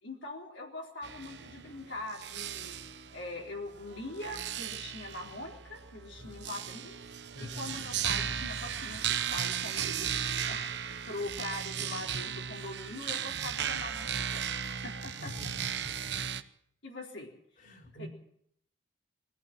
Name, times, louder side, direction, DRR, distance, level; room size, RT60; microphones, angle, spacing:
voice 1, 0.0-2.8 3.1-7.0 7.4-10.1 10.5-15.3 16.8-17.3 18.0-18.1, left 2 dB, 70° left, -1 dB, 4.0 m, -42 dB
sound 1, 1.0-16.4, right 8 dB, 60° right, 1.0 m, -36 dB
voice 2, 7.3-7.8 15.2-16.1 17.6-18.1, left 1 dB, 45° left, 3 dB, 4.2 m, -45 dB
22.5 x 15.0 x 7.7 m, 0.69 s
head